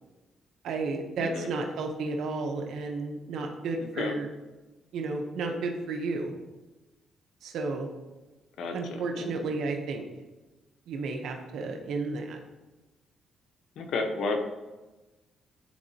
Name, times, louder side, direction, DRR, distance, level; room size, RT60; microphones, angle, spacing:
voice 1, 0.6-4.3 4.9-6.3 7.4-7.9 8.7-10.0 10.9-12.4, right 3 dB, 75° right, 3 dB, 0.8 m, -32 dB
voice 2, 1.2-1.5 3.8-4.2 8.6-9.3 13.8-14.4, left 3 dB, 75° left, 4 dB, 0.8 m, -32 dB
10.5 x 3.8 x 2.8 m, 1.1 s
cardioid pair, 90°, 0 cm